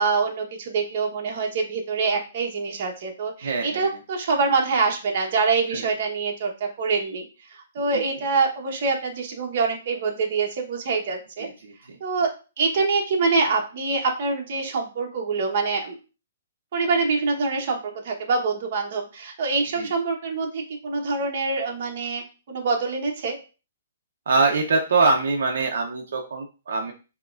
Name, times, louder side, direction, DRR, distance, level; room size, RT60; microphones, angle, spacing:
voice 1, 0.0-11.5 12.0-12.3 12.6-16.0 16.7-23.4, right 4 dB, 40° right, 0 dB, 1.1 m, -25 dB
voice 2, 3.4-3.9 5.7-5.8 7.9-8.0 11.4-11.7 19.8-19.9 24.3-26.9, right 3 dB, 65° right, 1 dB, 0.8 m, -23 dB
7.3 x 2.9 x 2.5 m, 0.33 s
hypercardioid pair, 175°, 0 cm